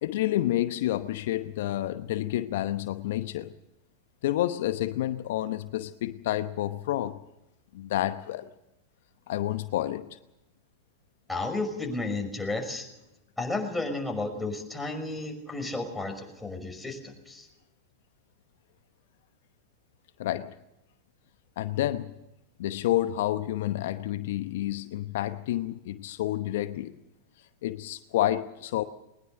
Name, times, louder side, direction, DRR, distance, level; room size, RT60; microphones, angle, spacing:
voice 1, 0.0-3.5 4.2-7.2 7.7-8.5 9.3-10.2 20.2-20.5 21.6-22.1 22.6-27.0 27.6-28.8, left 14 dB, 65° left, 0.9 m, -29 dB
voice 2, 11.3-12.9 13.4-17.5, left 2 dB, 5° left, 5.7 m, -32 dB
21.5 x 20.0 x 6.7 m
hypercardioid pair, 95°, 0 cm